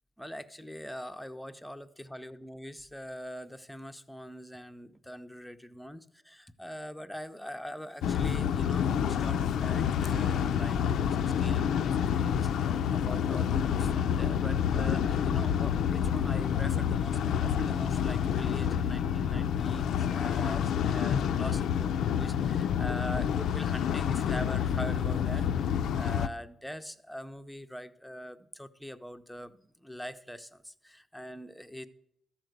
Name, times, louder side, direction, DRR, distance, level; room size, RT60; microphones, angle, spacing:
voice 1, 0.2-31.9, equal, ahead, 9 dB, 0.5 m, -43 dB
sound 1, 8.0-26.3, left 8 dB, 80° left, 0.3 m, -28 dB
13.0 x 4.3 x 7.8 m, 0.75 s
cardioid pair, 125°, 0 cm